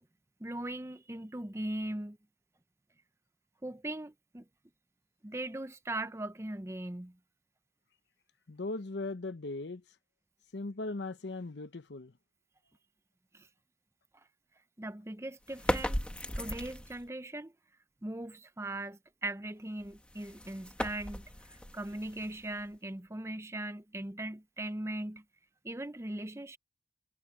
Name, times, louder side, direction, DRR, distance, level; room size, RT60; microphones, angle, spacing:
voice 1, 0.4-2.2 3.6-4.4 5.2-7.2 13.3-13.5 14.8-16.0 16.4-17.5 18.0-25.2 25.6-26.6, right 1 dB, 15° right, 0.6 m, -39 dB
voice 2, 8.5-9.8 10.5-12.1, left 2 dB, 80° left, 0.8 m, -38 dB
sound 1, 15.5-17.1 19.8-22.8, equal, 5° left, 1.3 m, -37 dB
head